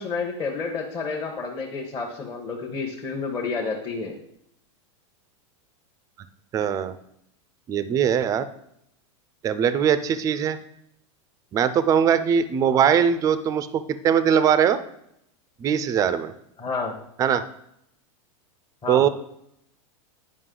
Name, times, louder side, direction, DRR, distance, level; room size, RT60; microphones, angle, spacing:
voice 1, 0.0-4.1 16.6-16.9 18.8-19.0, left 4 dB, 25° left, -1 dB, 1.0 m, -30 dB
voice 2, 6.5-6.9 7.7-8.4 9.4-10.6 11.5-14.8 15.6-16.3 17.2-17.4 18.9-19.1, right 8 dB, 20° right, 13 dB, 0.4 m, -21 dB
9.7 x 5.1 x 3.8 m, 0.75 s
supercardioid pair, 145°, 16 cm